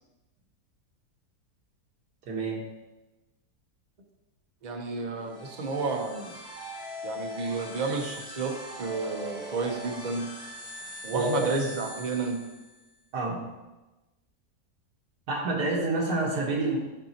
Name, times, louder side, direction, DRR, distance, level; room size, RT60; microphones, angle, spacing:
voice 1, 2.3-2.6 10.8-11.5 13.1-13.4 15.3-16.8, right 2 dB, 80° right, -2 dB, 1.8 m, -28 dB
voice 2, 4.6-6.3 7.0-10.3 11.0-12.4, right 3 dB, 40° right, 2 dB, 0.7 m, -31 dB
sound 1, 5.2-12.9, equal, 5° right, 1.1 m, -41 dB
10.5 x 4.0 x 2.9 m, 1.1 s
omnidirectional pair, 1.7 m